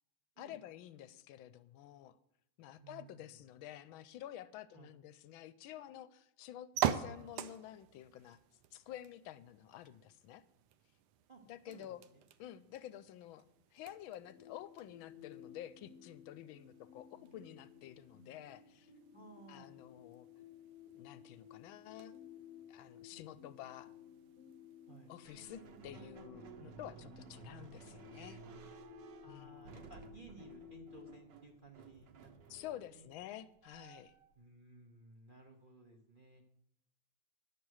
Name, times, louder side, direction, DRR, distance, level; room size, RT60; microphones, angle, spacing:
voice 1, 0.4-2.2 2.6-8.4 8.7-10.4 11.5-12.0 12.4-13.4 13.7-18.9 19.5-20.3 20.9-22.2 22.7-23.9 25.1-28.4 29.3-29.7 32.5-34.1, left 12 dB, 80° left, 15 dB, 1.4 m, -50 dB
voice 2, 2.8-3.3 4.7-4.9 11.3-12.2 19.1-19.7 24.9-25.1 29.2-32.3 32.9-33.1 34.4-36.4, right 3 dB, 50° right, 2 dB, 0.6 m, -58 dB
sound 1, 6.7-25.5, right 10 dB, 90° right, 1.5 m, -46 dB
sound 2, 14.2-31.2, left 10 dB, 65° left, 1.0 m, -57 dB
sound 3, 25.3-34.3, right 6 dB, 65° right, 1.4 m, -56 dB
10.5 x 8.6 x 6.3 m, 0.78 s
omnidirectional pair, 2.3 m